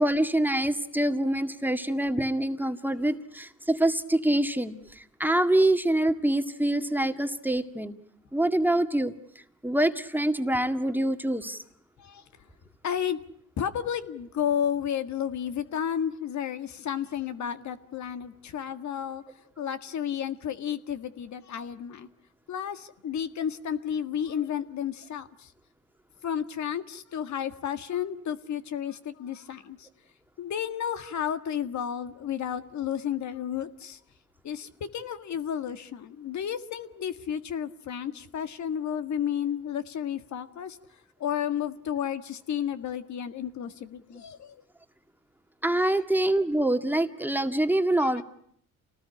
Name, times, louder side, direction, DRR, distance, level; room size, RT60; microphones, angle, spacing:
voice 1, 0.0-7.9 8.3-11.6 45.6-48.2, right 1 dB, 5° right, 7 dB, 1.9 m, -25 dB
voice 2, 12.8-13.2 13.6-19.2 19.6-22.1 22.5-25.5 26.2-29.9 30.4-34.0 34.4-40.8 41.2-44.6 48.0-48.2, left 9 dB, 70° left, 10 dB, 1.8 m, -32 dB
28.5 x 19.0 x 9.9 m, 0.69 s
cardioid pair, 90°, 30 cm